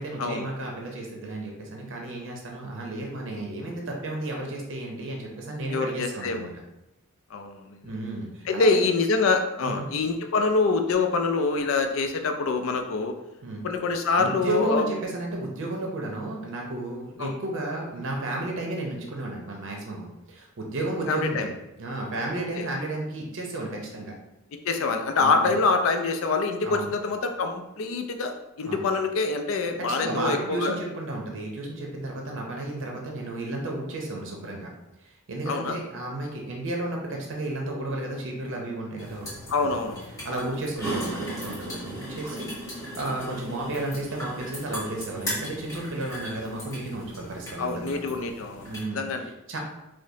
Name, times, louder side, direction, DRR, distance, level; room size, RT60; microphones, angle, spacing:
voice 1, 0.0-6.5 7.8-8.8 9.6-9.9 13.4-13.6 14.2-21.5 21.8-24.1 25.2-25.6 26.6-26.9 28.6-28.8 29.8-34.7 35.0-39.3 39.6-39.8 40.2-42.5 42.9-48.1 48.6-49.1 49.5-49.6, right 2 dB, 60° right, 0 dB, 0.6 m, -33 dB
voice 2, 5.7-6.5 7.3-7.9 8.5-13.1 13.6-14.8 17.2-17.3 21.1-21.5 22.6-22.7 24.6-28.3 28.6-30.8 35.5-35.8 39.5-40.1 47.6-49.3, left 4 dB, 65° left, 5 dB, 0.4 m, -25 dB
sound 1, 39.0-48.8, equal, 15° left, 1.4 m, -37 dB
4.9 x 2.0 x 2.7 m, 0.92 s
head